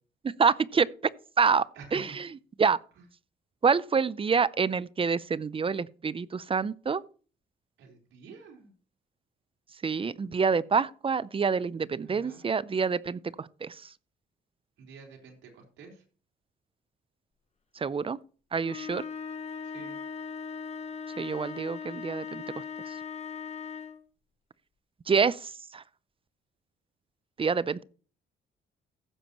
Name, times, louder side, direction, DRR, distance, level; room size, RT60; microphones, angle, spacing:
voice 1, 0.2-0.9 1.4-1.7 1.9-2.3 2.6-2.8 3.6-7.0 9.8-13.8 17.8-18.2 18.5-19.0 21.2-22.4 22.9-23.0 25.1-25.8 27.4-27.8, right 5 dB, 25° right, 0.5 m, -27 dB
voice 2, 1.8-2.2 7.8-8.7 12.0-12.6 14.8-16.0 19.7-20.0, right 5 dB, 75° right, 4.0 m, -48 dB
sound 1, 18.6-24.1, left 6 dB, 35° left, 1.1 m, -39 dB
15.5 x 6.9 x 3.0 m
cardioid pair, 90°, 20 cm